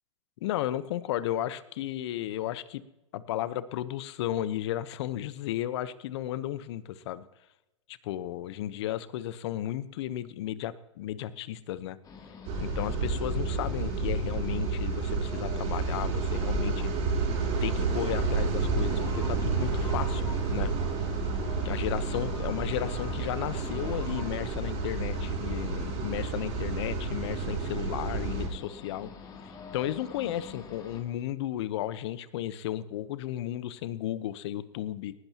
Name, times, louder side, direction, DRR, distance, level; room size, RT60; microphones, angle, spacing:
voice 1, 0.4-2.8 3.1-7.2 7.9-12.0 12.6-16.9 17.6-20.2 20.5-20.7 21.6-29.1 29.4-35.1, left 12 dB, 60° left, 15 dB, 0.9 m, -34 dB
sound 1, 12.0-31.0, left 4 dB, 25° left, 2.7 m, -45 dB
sound 2, 12.4-28.5, right 4 dB, 45° right, 6.3 m, -30 dB
19.0 x 16.0 x 2.9 m, 0.96 s
hypercardioid pair, 120°, 16 cm